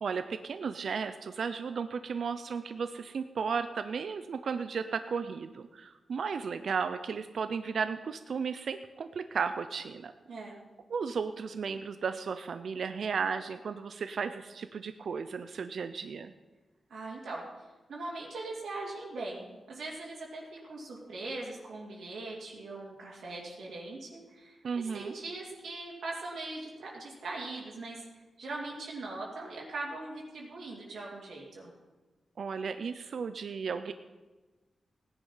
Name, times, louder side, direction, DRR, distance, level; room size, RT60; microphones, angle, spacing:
voice 1, 0.0-10.1 10.9-16.3 24.6-25.1 32.4-33.9, right 5 dB, 60° right, 10 dB, 0.5 m, -34 dB
voice 2, 10.3-10.6 16.9-17.4 17.9-28.0 28.4-31.7, right 2 dB, 75° right, -4 dB, 2.8 m, -41 dB
17.0 x 10.0 x 5.6 m, 1.2 s
wide cardioid pair, 175°, 0 cm